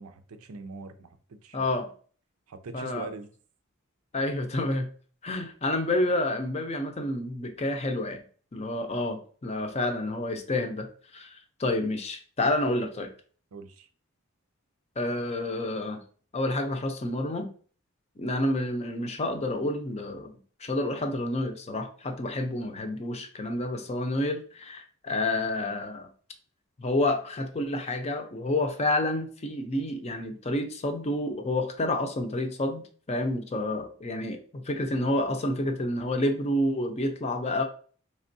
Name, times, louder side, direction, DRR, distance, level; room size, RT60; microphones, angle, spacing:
voice 1, 0.0-1.7 2.5-3.3 13.5-13.9, right 3 dB, 85° right, 0.5 m, -42 dB
voice 2, 1.5-1.9 2.7-3.1 4.1-4.9 5.2-8.2 8.5-10.9 11.1-13.1 15.0-16.0 16.3-17.5 18.2-20.3 20.6-26.1 26.8-37.6, left 1 dB, 30° left, 0.6 m, -29 dB
4.3 x 3.5 x 2.6 m
head